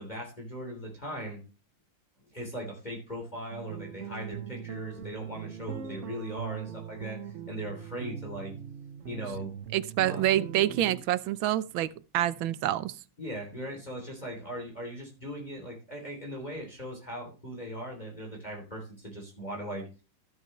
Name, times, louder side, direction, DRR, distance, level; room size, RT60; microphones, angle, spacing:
voice 1, 0.0-1.4 2.3-8.5 9.1-9.5 10.0-10.3 13.2-19.9, equal, 20° left, 3.4 m, -39 dB
sound 1, 3.5-11.0, right 9 dB, 65° right, 0.7 m, -41 dB
voice 2, 9.7-13.0, right 13 dB, 85° right, 1.5 m, -27 dB
14.0 x 8.4 x 3.2 m
omnidirectional pair, 2.2 m